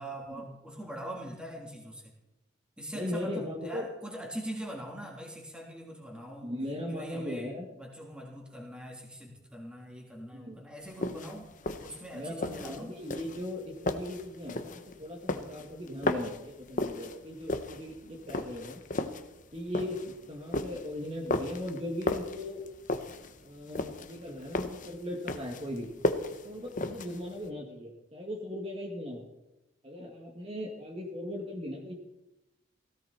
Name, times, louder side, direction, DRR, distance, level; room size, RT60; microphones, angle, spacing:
voice 1, 0.0-2.1 2.8-6.6 6.9-11.5 11.8-13.0, right 1 dB, 5° right, -1 dB, 3.4 m, -42 dB
voice 2, 2.9-3.9 6.4-7.7 10.3-10.6 12.1-18.8 19.5-22.6 23.4-25.9 26.4-29.2 29.8-31.9, left 1 dB, 30° right, -1 dB, 2.3 m, -38 dB
sound 1, 10.9-27.5, left 2 dB, 40° left, 1.1 m, -35 dB
18.0 x 16.5 x 4.4 m, 0.94 s
head